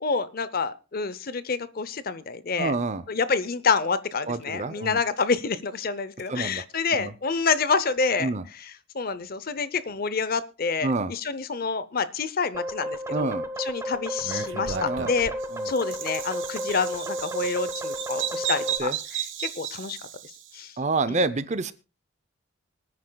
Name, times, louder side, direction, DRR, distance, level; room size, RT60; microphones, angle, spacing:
voice 1, 0.0-2.8 3.1-15.3 15.6-20.0 20.5-20.7 21.1-21.2, left 5 dB, 45° left, 15 dB, 0.6 m, -28 dB
voice 2, 2.6-3.0 4.3-5.0 6.3-6.6 7.0-7.1 8.2-8.4 10.8-11.1 13.1-13.4 14.7-15.1 15.5-15.7 18.8-19.0 20.8-21.7, right 3 dB, 35° right, 14 dB, 0.6 m, -27 dB
sound 1, 12.5-18.8, equal, 15° right, 1.0 m, -33 dB
Bird vocalization bird call bird song, 14.2-20.5, right 9 dB, 60° right, 1.2 m, -34 dB
25.0 x 9.5 x 2.3 m, 0.33 s
head